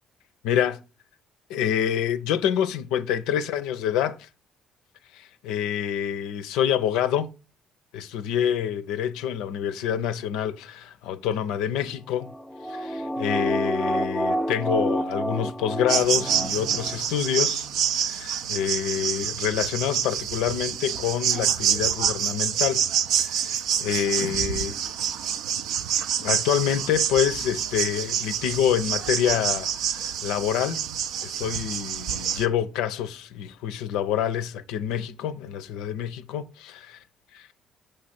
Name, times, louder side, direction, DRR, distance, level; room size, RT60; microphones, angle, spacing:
voice 1, 0.4-0.8 1.5-4.3 5.1-7.3 7.9-12.3 12.7-17.6 17.9-22.9 23.2-24.7 26.2-30.9 31.2-36.8, left 9 dB, 75° left, 0.5 m, -27 dB
sound 1, 12.2-17.0 17.3-17.4, right 1 dB, 10° left, 0.6 m, -28 dB
sound 2, 15.9-32.5, right 9 dB, 70° right, 0.5 m, -27 dB
6.6 x 5.2 x 4.2 m
hypercardioid pair, 55°, 0 cm